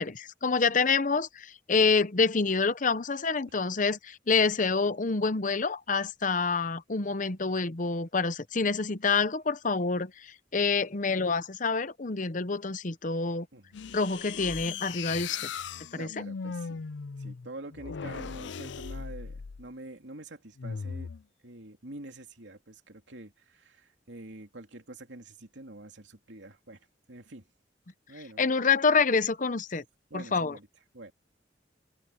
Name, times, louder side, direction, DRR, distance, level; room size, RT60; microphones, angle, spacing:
voice 1, 0.0-13.5 13.9-15.5 15.9-16.1 28.4-29.8 30.1-30.6, left 4 dB, 45° left, 0.9 m, -27 dB
sound 1, 13.7-19.7 20.6-21.2, left 6 dB, 80° left, 0.5 m, -38 dB
voice 2, 16.0-16.9 17.2-21.1 21.4-27.5 28.1-28.4 30.1-30.7 30.9-31.1, right 2 dB, 90° right, 2.8 m, -46 dB
head